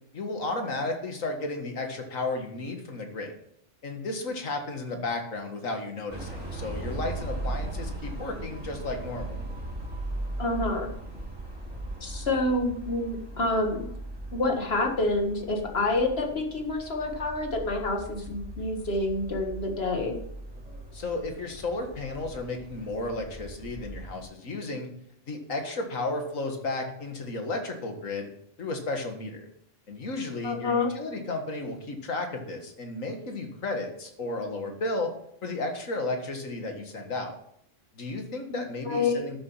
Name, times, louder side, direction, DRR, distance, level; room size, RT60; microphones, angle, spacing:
voice 1, 0.1-3.3 3.8-9.4 20.9-24.9 25.3-28.3 28.6-29.4 29.9-35.1 35.4-37.3 38.0-39.4, left 2 dB, 90° left, 4 dB, 2.1 m, -33 dB
sound 1, 6.1-24.2, right 1 dB, 5° right, 4.0 m, -38 dB
voice 2, 10.4-10.9 12.0-13.9 14.3-20.2 30.4-30.9 38.5-38.6 38.9-39.2, left 2 dB, 50° left, 3 dB, 2.0 m, -28 dB
12.0 x 7.2 x 5.5 m, 0.71 s
omnidirectional pair, 1.3 m